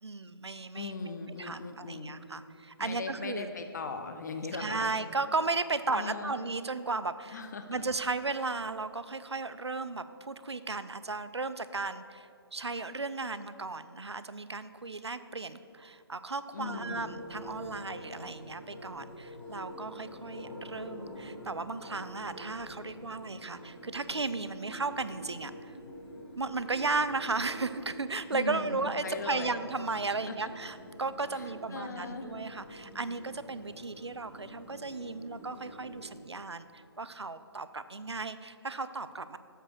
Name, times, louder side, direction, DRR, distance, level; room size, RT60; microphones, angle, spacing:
voice 1, 0.0-3.5 4.5-7.4 7.7-25.5 26.4-39.4, right 3 dB, 85° right, 13 dB, 0.5 m, -35 dB
voice 2, 0.7-2.2 2.8-5.0 5.9-6.4 7.3-7.9 16.5-17.1 28.3-29.6 30.3-30.5 31.3-32.4, left 4 dB, 45° left, 6 dB, 0.7 m, -39 dB
sound 1, 16.6-36.1, equal, 5° left, 1.5 m, -47 dB
7.5 x 5.0 x 6.6 m, 2.5 s
figure-of-eight pair, 140°, 14 cm